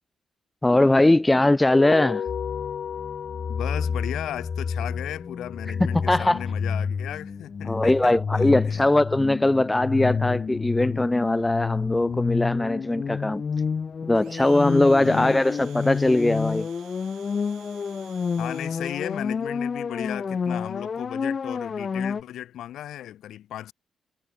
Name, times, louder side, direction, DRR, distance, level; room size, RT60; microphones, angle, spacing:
voice 1, 0.6-2.2 5.9-6.4 7.7-13.4 14.1-16.7, left 2 dB, 10° left, 0.3 m, -20 dB
sound 1, 1.6-6.4, left 8 dB, 55° left, 2.0 m, -35 dB
sound 2, 2.3-22.2, left 5 dB, 40° left, 1.8 m, -29 dB
voice 2, 3.5-8.8 15.0-15.4 18.4-23.7, left 12 dB, 85° left, 1.9 m, -36 dB
Domestic sounds home sounds, 14.1-19.2, right 12 dB, 85° right, 4.3 m, -51 dB
cardioid pair, 125°, 0 cm